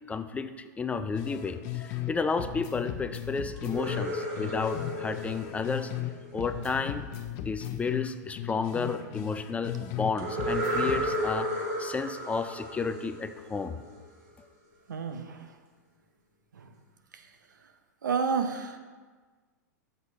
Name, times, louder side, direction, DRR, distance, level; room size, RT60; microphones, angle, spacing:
voice 1, 0.1-0.5 0.8-5.9 6.3-7.1 7.4-11.5 11.8-13.8, left 4 dB, 15° left, 10 dB, 0.5 m, -32 dB
sound 1, 1.1-2.1 2.4-6.1 6.4-10.1 10.4-11.2, left 12 dB, 50° left, 0.8 m, -36 dB
sound 2, 3.6-6.5 10.2-13.9, equal, 60° right, 2.3 m, -33 dB
voice 2, 14.9-15.5 16.5-16.7 17.1-17.3 18.0-18.8, right 5 dB, 85° right, 7 dB, 0.8 m, -31 dB
13.5 x 6.7 x 2.9 m, 1.4 s
hypercardioid pair, 110°, 10 cm